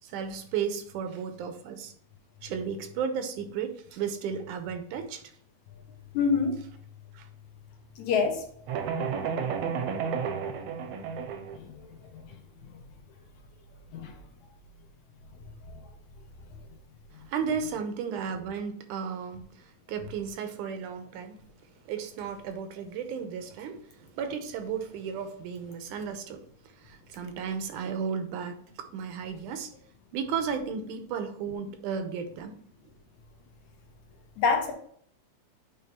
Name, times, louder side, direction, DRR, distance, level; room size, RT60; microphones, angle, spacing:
voice 1, 0.0-1.9 2.4-5.2 7.1-7.3 17.3-21.4 21.9-26.5 26.7-29.7 30.1-32.5, right 6 dB, 90° right, 7 dB, 2.3 m, -34 dB
voice 2, 6.1-6.6 8.0-8.4 11.6-11.7 12.1-12.2 13.9-14.1 15.7-15.8 34.4-34.7, left 5 dB, 75° left, 3 dB, 2.4 m, -26 dB
sound 1, 8.7-11.6, right 6 dB, 70° right, 1.7 m, -31 dB
9.0 x 3.5 x 4.3 m, 0.62 s
omnidirectional pair, 3.5 m